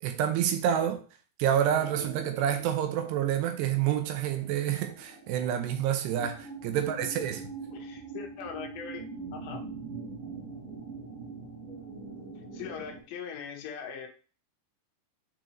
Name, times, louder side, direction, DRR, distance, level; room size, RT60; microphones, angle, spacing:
voice 1, 0.0-1.0 1.4-7.4, right 10 dB, 80° right, 2.8 m, -28 dB
sound 1, 1.7-13.0, right 4 dB, 60° right, 3.3 m, -43 dB
voice 2, 7.7-9.0 9.3-9.6 12.5-14.1, left 7 dB, 80° left, 3.4 m, -40 dB
9.0 x 4.5 x 3.1 m
omnidirectional pair, 5.0 m